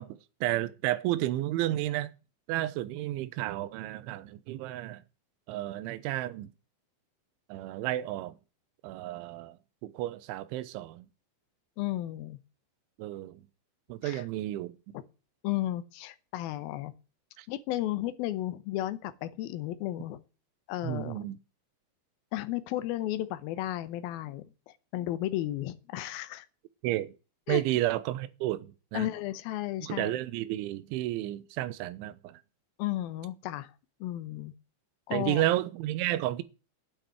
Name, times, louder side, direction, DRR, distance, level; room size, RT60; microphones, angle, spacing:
voice 1, 0.0-2.1 2.5-5.0 5.5-6.5 7.5-8.4 8.8-9.6 9.8-11.1 13.0-13.4 13.9-14.8 17.4-17.5 20.8-21.4 26.8-27.1 27.5-29.1 29.8-32.4 35.1-36.4, right 15 dB, 85° right, 3.2 m, -32 dB
voice 2, 11.8-12.4 14.0-14.2 15.4-16.9 17.5-20.2 20.7-21.2 22.3-26.5 27.5-27.6 28.9-30.2 32.8-33.7 34.0-34.5 35.1-35.4, left 14 dB, 80° left, 2.2 m, -34 dB
9.8 x 8.8 x 9.0 m
omnidirectional pair, 5.4 m